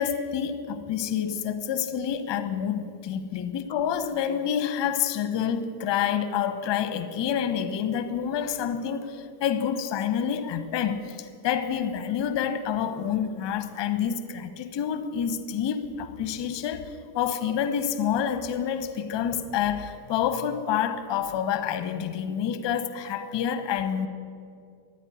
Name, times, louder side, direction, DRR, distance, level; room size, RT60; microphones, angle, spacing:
voice 1, 0.0-24.1, left 8 dB, 45° left, 11 dB, 1.0 m, -28 dB
14.0 x 10.0 x 8.1 m, 2.5 s
figure-of-eight pair, 90°, 0 cm